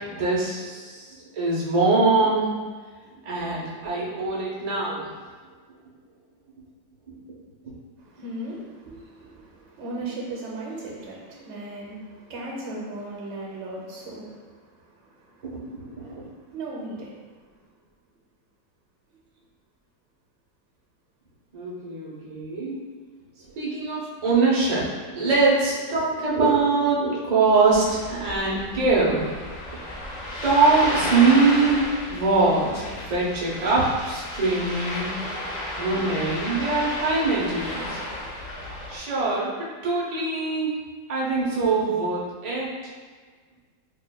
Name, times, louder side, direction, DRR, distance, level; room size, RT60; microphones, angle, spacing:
voice 1, 0.0-2.5 3.2-5.1 7.1-7.2 15.4-16.3 21.5-22.8 23.6-29.3 30.4-35.1 35.8-38.0 38.9-39.5 39.8-40.7 41.1-42.7, right 3 dB, 60° right, -6 dB, 0.4 m, -23 dB
voice 2, 8.0-15.7 16.0-16.2 16.5-17.1, right 2 dB, 75° right, -3 dB, 1.4 m, -37 dB
Ocean, 27.7-39.0, left 1 dB, 65° left, 1.5 m, -33 dB
6.2 x 2.2 x 2.2 m, 1.5 s
omnidirectional pair, 2.0 m